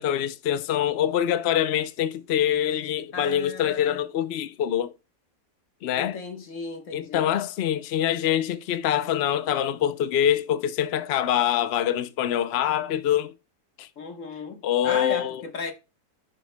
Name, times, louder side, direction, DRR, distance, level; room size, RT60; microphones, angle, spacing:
voice 1, 0.0-4.9 5.8-6.2 6.9-13.3 13.8-13.9 14.6-15.4, left 10 dB, 70° left, 0.6 m, -25 dB
voice 2, 3.1-4.0 5.9-7.3 14.0-15.7, left 4 dB, 50° left, 1.6 m, -35 dB
11.0 x 8.9 x 2.2 m
omnidirectional pair, 1.7 m